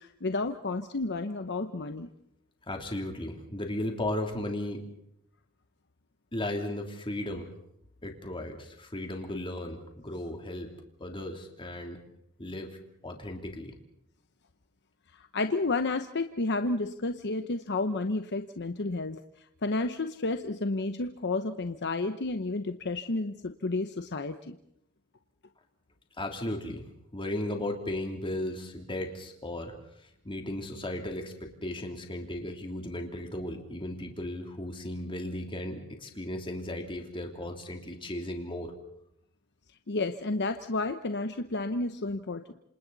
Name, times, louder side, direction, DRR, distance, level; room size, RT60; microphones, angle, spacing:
voice 1, 0.0-2.1 15.1-19.2 19.6-24.6 39.9-42.5, left 3 dB, 50° left, 8 dB, 0.9 m, -31 dB
voice 2, 2.7-4.9 6.3-7.5 8.0-10.7 11.0-12.0 12.4-12.8 13.0-13.7 26.2-29.8 30.0-38.7, left 1 dB, 25° left, 3 dB, 3.0 m, -36 dB
28.0 x 27.0 x 4.1 m, 0.76 s
head